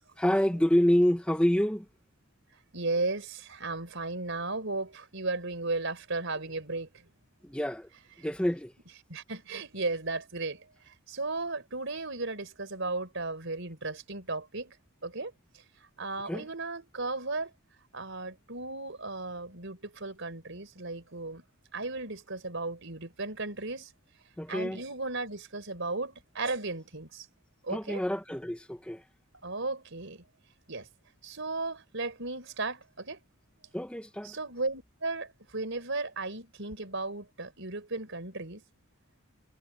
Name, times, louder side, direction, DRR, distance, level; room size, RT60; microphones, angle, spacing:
voice 1, 0.2-1.9 7.4-7.9 8.2-8.7 16.3-16.4 24.4-24.8 27.7-29.0 33.7-34.4, equal, 5° left, 1.1 m, -27 dB
voice 2, 2.7-7.1 9.1-14.8 15.0-15.3 16.0-17.5 17.9-21.4 21.7-23.9 24.5-27.3 27.6-28.0 29.4-30.2 30.7-30.9 31.2-33.2 34.2-38.6, right 3 dB, 60° right, 5.5 m, -35 dB
head